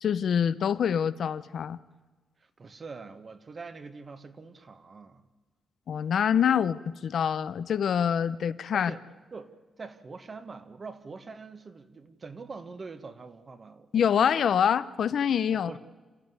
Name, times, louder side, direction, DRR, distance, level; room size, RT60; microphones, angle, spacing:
voice 1, 0.0-1.8 5.9-8.9 13.9-15.7, left 8 dB, 60° left, 0.7 m, -25 dB
voice 2, 2.4-5.2 8.7-9.0 9.3-13.9 15.5-15.8, right 4 dB, 30° right, 1.4 m, -44 dB
27.5 x 15.0 x 9.6 m
wide cardioid pair, 150°, 0 cm